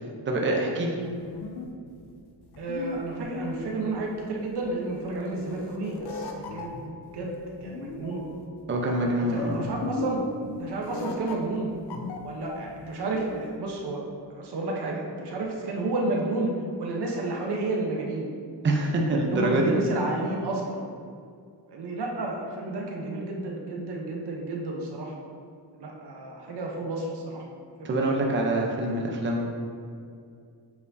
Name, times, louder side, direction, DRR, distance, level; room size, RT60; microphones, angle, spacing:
voice 1, 0.3-0.9 8.7-9.7 18.6-19.7 27.8-29.5, right 1 dB, 30° right, 0 dB, 0.7 m, -25 dB
sound 1, 1.0-13.5, left 4 dB, 75° left, 0.7 m, -38 dB
voice 2, 2.6-7.3 7.6-8.2 9.2-10.2 10.6-11.7 12.2-14.0 14.3-16.5 16.8-18.3 19.2-20.8 21.7-25.1 25.7-27.4 27.8-28.0, right 2 dB, 80° right, -1 dB, 1.0 m, -31 dB
8.3 x 4.3 x 2.7 m, 2.3 s
wide cardioid pair, 130°, 39 cm